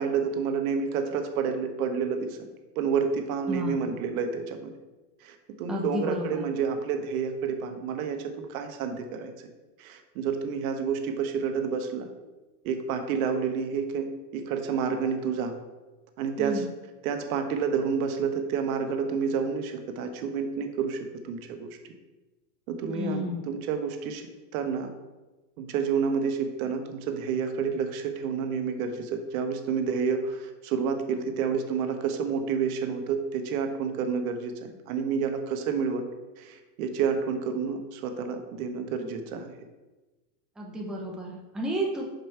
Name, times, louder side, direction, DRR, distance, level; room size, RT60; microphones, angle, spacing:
voice 1, 0.0-2.4 2.7-4.7 5.2-9.5 9.8-12.1 12.6-15.5 16.2-16.7 17.0-21.7 22.7-24.3 24.5-24.9 25.6-36.1 36.4-39.5, right 6 dB, 60° right, 6 dB, 1.2 m, -29 dB
voice 2, 3.5-3.9 5.7-6.4 16.4-16.7 22.9-23.6 40.6-42.1, equal, ahead, -2 dB, 0.7 m, -32 dB
6.2 x 5.3 x 4.6 m, 1.1 s
hypercardioid pair, 125°, 50 cm